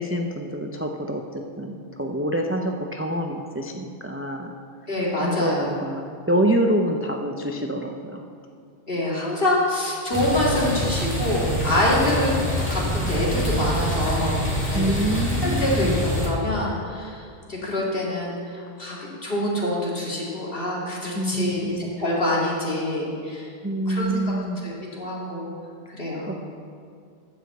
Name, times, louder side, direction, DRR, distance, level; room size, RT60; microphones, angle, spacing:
voice 1, 0.0-4.5 5.2-8.2 12.1-12.2 14.7-16.0 21.1-21.9 23.6-24.6 26.3-26.4, right 1 dB, 20° right, 2 dB, 0.4 m, -26 dB
voice 2, 4.9-5.7 8.9-14.9 15.4-19.0 19.2-24.3 24.6-25.5 26.0-26.4, left 1 dB, 50° left, -5 dB, 2.5 m, -26 dB
sound 1, 10.1-16.3, equal, 10° left, 2.0 m, -25 dB
12.5 x 5.2 x 7.7 m, 2.3 s
omnidirectional pair, 1.2 m